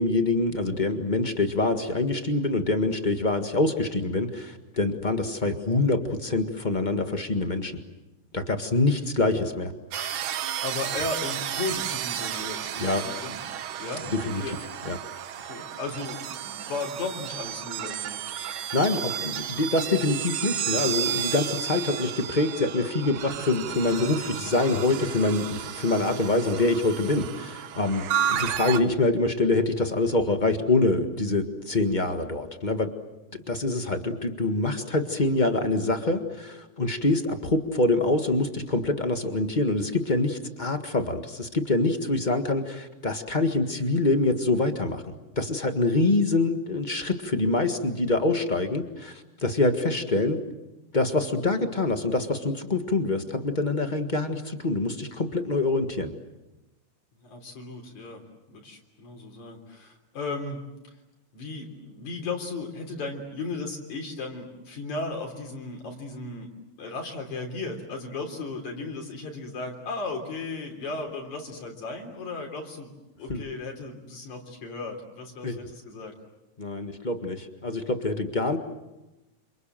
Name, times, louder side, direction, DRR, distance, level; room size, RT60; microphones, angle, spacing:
voice 1, 0.0-7.7 8.3-9.7 12.8-13.0 14.1-14.4 14.8-15.0 18.3-32.9 33.3-45.0 45.4-50.4 50.9-56.1 73.3-73.4 75.4-75.6 76.6-78.6, left 2 dB, 25° left, 6 dB, 0.9 m, -25 dB
sound 1, 9.9-28.8, right 10 dB, 75° right, 2.6 m, -32 dB
voice 2, 10.6-13.4 13.8-14.6 15.4-18.2 27.1-27.4 57.2-60.6 61.3-66.5 66.8-72.9 73.2-76.1, left 3 dB, 65° left, 2 dB, 4.9 m, -35 dB
28.0 x 27.5 x 7.6 m, 1.0 s
omnidirectional pair, 3.6 m